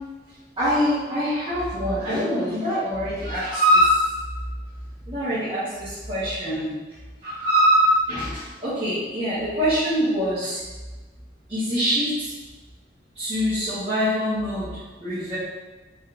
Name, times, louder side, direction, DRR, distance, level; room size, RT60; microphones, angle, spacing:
voice 1, 0.6-4.1 5.1-6.8 7.2-10.6 11.5-12.4 13.1-15.4, equal, 30° right, -14 dB, 1.3 m, -23 dB
4.2 x 3.3 x 2.5 m, 1.2 s
head